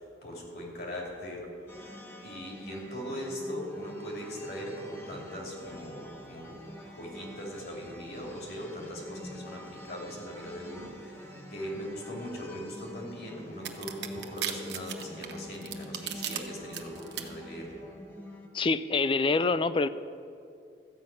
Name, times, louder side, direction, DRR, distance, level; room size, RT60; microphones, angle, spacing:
voice 1, 0.0-1.5 2.2-6.6 6.9-17.8, equal, 60° left, -1 dB, 2.8 m, -40 dB
sound 1, 1.7-18.5, left 1 dB, 15° left, 1.1 m, -46 dB
sound 2, 13.6-16.4 16.7-17.2, right 10 dB, 70° right, 0.9 m, -35 dB
voice 2, 18.5-19.9, left 3 dB, 30° left, 14 dB, 0.3 m, -26 dB
13.5 x 5.8 x 8.8 m, 2.5 s
head